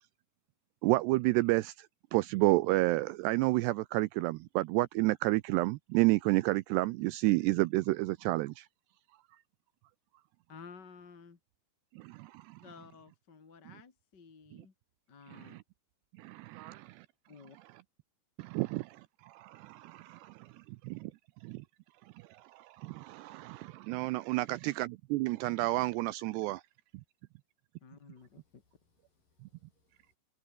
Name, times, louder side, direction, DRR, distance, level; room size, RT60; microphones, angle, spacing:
voice 1, 0.8-8.7 12.0-12.6 14.5-14.7 15.3-15.6 16.2-17.1 18.4-21.1 21.4-21.7 22.1-26.6, right 20 dB, 80° right, 2.5 m, -31 dB
voice 2, 10.5-11.4 12.6-14.7 15.1-15.6 17.3-17.6 27.8-28.6, left 5 dB, 30° left, 2.1 m, -53 dB
voice 3, 28.2-30.2, left 4 dB, 45° left, 9.1 m, -76 dB
omnidirectional pair, 5.2 m